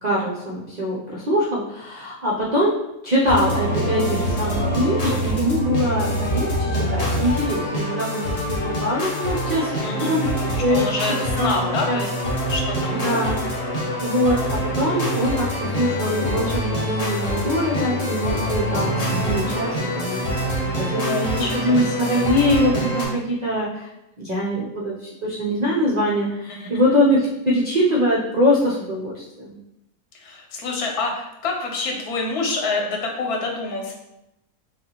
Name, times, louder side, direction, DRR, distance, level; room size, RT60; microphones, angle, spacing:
voice 1, 0.0-2.8 3.0-10.3 10.6-10.9 11.4-11.5 11.9-12.0 12.9-13.4 14.0-23.9 24.2-29.6, equal, 40° right, -5 dB, 0.6 m, -23 dB
sound 1, 3.3-23.0, equal, 30° left, 1.0 m, -25 dB
voice 2, 9.8-12.1 12.5-13.3 13.8-14.0 20.9-22.2 26.5-26.7 30.1-33.9, left 3 dB, 85° left, 1 dB, 1.4 m, -28 dB
6.2 x 2.4 x 3.0 m, 0.88 s
omnidirectional pair, 1.6 m